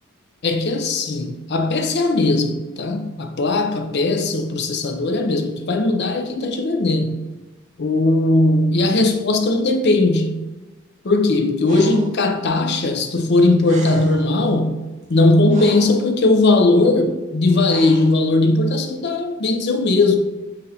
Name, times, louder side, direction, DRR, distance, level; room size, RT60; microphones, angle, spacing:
voice 1, 0.4-7.2 7.8-10.4 11.0-14.8 15.1-20.2, left 2 dB, 50° left, 0.5 m, -18 dB
Breathing, 11.7-12.2 13.4-13.5 13.6-14.3 15.0-16.1 17.6-18.2, right 2 dB, 35° right, 0.5 m, -35 dB
6.6 x 2.6 x 2.8 m
head